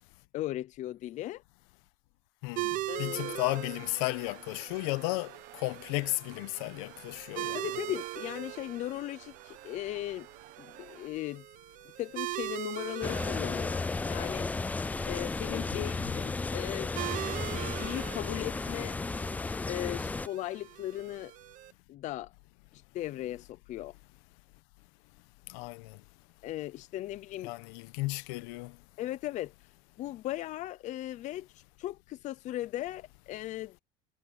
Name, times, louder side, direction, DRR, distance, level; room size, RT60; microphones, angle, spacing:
voice 1, 0.3-1.4 2.9-3.4 7.5-10.3 10.6-11.4 12.0-14.5 15.0-16.9 17.3-19.0 19.7-21.3 21.9-22.3 22.7-23.9 26.4-27.5 29.0-29.5 30.0-33.8, left 14 dB, 40° left, 0.6 m, -37 dB
voice 2, 2.4-7.7 15.7-16.3 25.5-26.0 27.4-28.8, left 23 dB, 80° left, 1.0 m, -34 dB
sound 1, 2.6-21.7, right 17 dB, 50° right, 0.8 m, -41 dB
sound 2, 3.2-11.1, right 20 dB, 70° right, 1.2 m, -54 dB
sound 3, 13.0-20.3, left 3 dB, 10° left, 0.3 m, -34 dB
cardioid pair, 145°, 18 cm